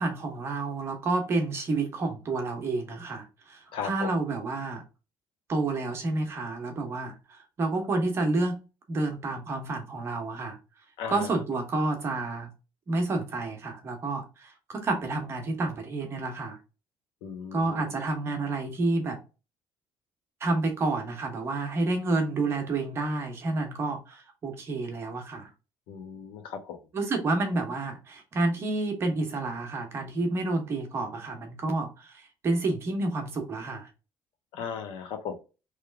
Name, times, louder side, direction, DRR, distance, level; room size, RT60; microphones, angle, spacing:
voice 1, 0.0-4.8 5.5-8.6 8.9-10.6 11.1-12.5 12.9-16.6 17.5-19.2 20.4-25.5 26.9-33.9, right 2 dB, 30° right, 1.1 m, -29 dB
voice 2, 3.7-4.1 11.0-11.4 17.2-17.9 25.9-26.8 34.5-35.4, left 7 dB, 85° left, 1.1 m, -36 dB
3.4 x 3.2 x 3.5 m
cardioid pair, 170°, 9 cm